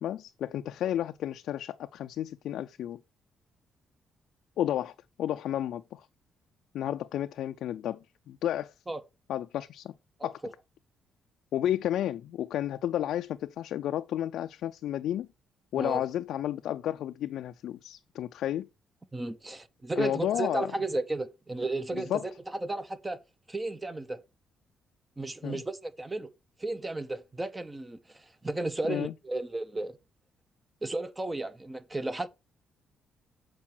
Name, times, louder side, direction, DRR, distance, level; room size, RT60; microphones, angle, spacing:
voice 1, 0.0-3.0 4.6-4.9 5.2-6.1 6.7-8.0 8.3-8.7 9.3-9.9 10.2-10.4 11.5-15.3 15.7-18.7 20.0-20.7 22.1-22.2 25.4-25.6 28.9-29.1, left 11 dB, 75° left, 0.4 m, -32 dB
voice 2, 10.2-10.5 15.8-16.1 19.1-23.2 23.5-24.2 25.2-26.3 26.6-30.0 30.8-32.3, right 2 dB, 15° right, 0.7 m, -34 dB
7.3 x 4.7 x 4.4 m
cardioid pair, 90°, 0 cm